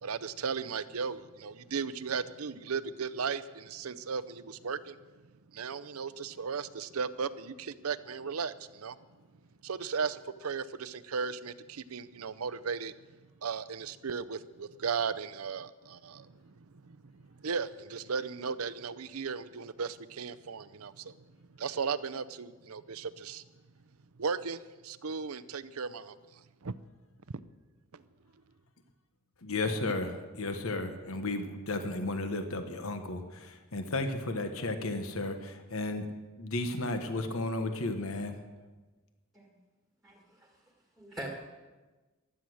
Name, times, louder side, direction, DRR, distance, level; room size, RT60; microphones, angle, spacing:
voice 1, 0.0-5.0 5.5-9.0 9.6-12.9 13.4-21.2 21.6-23.4 24.2-26.8 27.9-28.0, right 5 dB, 85° right, 15 dB, 0.7 m, -36 dB
voice 2, 29.4-36.1 36.4-38.4, left 2 dB, 75° left, 7 dB, 1.3 m, -34 dB
voice 3, 40.0-40.5 41.0-41.4, right 1 dB, ahead, 0 dB, 1.8 m, -42 dB
15.5 x 12.0 x 6.4 m, 1.2 s
head